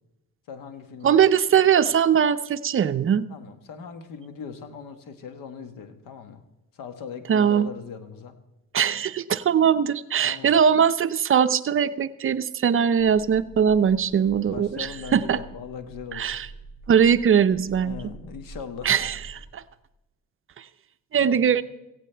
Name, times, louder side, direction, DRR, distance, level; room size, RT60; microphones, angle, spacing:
voice 1, 0.5-1.2 3.3-6.4 6.7-8.4 10.2-10.6 14.5-16.4 17.8-19.1 21.2-21.6, left 6 dB, 85° left, 8 dB, 1.3 m, -39 dB
voice 2, 1.0-3.3 7.3-7.7 8.7-15.4 16.1-16.5 16.9-17.9 18.8-19.2 19.5-19.6 21.1-21.6, right 8 dB, 40° right, 13 dB, 0.5 m, -21 dB
sound 1, 13.0-19.5, right 3 dB, 45° left, 3.4 m, -46 dB
17.0 x 16.0 x 3.4 m, 0.98 s
cardioid pair, 95°, 32 cm